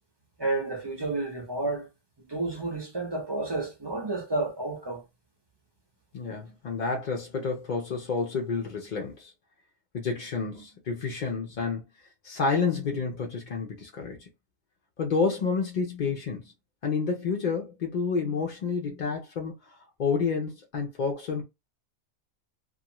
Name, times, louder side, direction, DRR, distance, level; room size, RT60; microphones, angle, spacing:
voice 1, 0.4-1.9 2.3-5.0, right 2 dB, 30° right, 0.5 m, -30 dB
voice 2, 6.1-9.3 9.9-11.8 12.2-14.3 15.0-16.5 16.8-19.7 20.0-21.4, left 5 dB, 65° left, 0.4 m, -29 dB
2.5 x 2.3 x 2.9 m
omnidirectional pair, 1.5 m